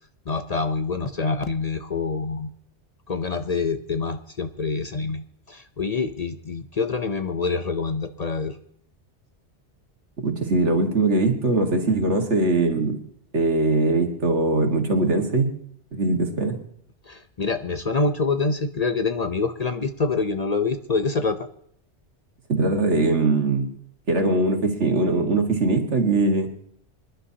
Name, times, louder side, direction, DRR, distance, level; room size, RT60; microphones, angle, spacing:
voice 1, 0.3-2.5 3.1-8.6 17.1-21.5, left 4 dB, 40° left, 8 dB, 0.7 m, -26 dB
voice 2, 10.2-13.0 13.3-15.5 15.9-16.6 22.5-23.7 24.1-26.5, right 2 dB, 75° right, 3 dB, 2.2 m, -21 dB
25.0 x 11.5 x 2.8 m, 0.67 s
omnidirectional pair, 1.2 m